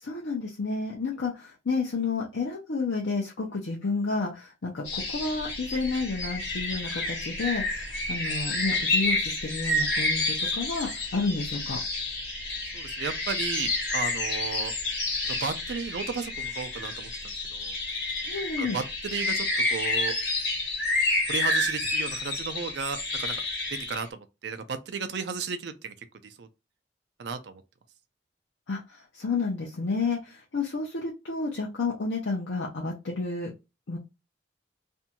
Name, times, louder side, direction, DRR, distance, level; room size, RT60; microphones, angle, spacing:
voice 1, 0.0-11.8 18.2-18.8 28.7-33.5 33.9-34.0, left 4 dB, 80° left, 0.6 m, -31 dB
sound 1, 4.9-24.1, left 2 dB, 60° left, 1.2 m, -29 dB
voice 2, 12.7-14.7 15.2-17.8 18.6-20.1 21.3-23.4 23.7-25.9 26.2-26.5 27.2-27.6, right 5 dB, 65° right, 0.4 m, -34 dB
2.6 x 2.2 x 2.8 m
head